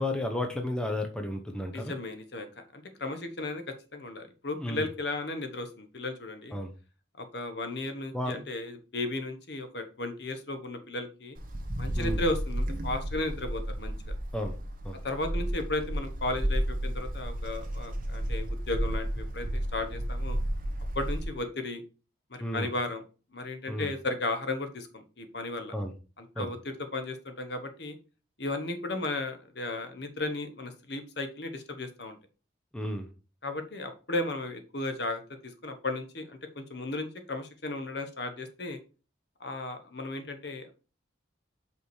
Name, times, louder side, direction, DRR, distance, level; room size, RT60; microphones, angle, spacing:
voice 1, 0.0-2.0 4.5-4.8 6.5-6.7 8.1-8.5 12.0-12.2 14.3-14.5 14.8-15.0 22.4-22.7 23.7-23.9 25.7-25.9 26.4-26.5 32.7-33.1, left 1 dB, 5° left, 4 dB, 0.8 m, -32 dB
voice 2, 1.7-2.5 2.7-6.5 7.2-11.4 11.8-14.1 15.0-20.4 20.9-21.8 22.3-23.0 23.3-25.7 26.2-28.0 28.4-32.2 33.4-38.8 39.4-40.7, left 2 dB, 60° left, 7 dB, 1.1 m, -35 dB
Wind, 11.4-21.4, right 1 dB, 45° right, 1.3 m, -32 dB
5.5 x 4.9 x 4.6 m, 0.34 s
head